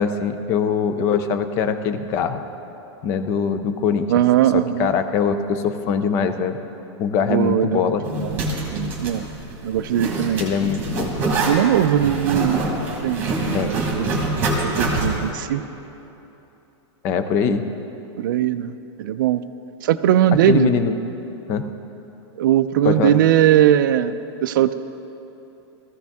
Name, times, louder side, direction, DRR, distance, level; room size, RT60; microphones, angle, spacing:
voice 1, 0.0-2.4 3.0-4.1 4.5-6.6 7.0-8.0 10.4-11.1 13.5-13.7 17.0-17.6 20.5-20.9 21.5-21.7 22.8-23.1, left 6 dB, 15° left, 9 dB, 0.4 m, -22 dB
voice 2, 4.1-4.9 7.3-7.8 8.2-8.3 8.7-9.3 9.6-10.4 11.5-12.6 13.0-14.2 14.6-15.6 18.2-18.7 19.0-19.4 19.8-20.7 22.4-24.7, right 11 dB, 45° right, 11 dB, 0.4 m, -19 dB
Zipper (clothing), 8.0-15.3, right 2 dB, 15° right, 1.4 m, -25 dB
18.0 x 14.0 x 3.5 m, 3.0 s
supercardioid pair, 175°, 15 cm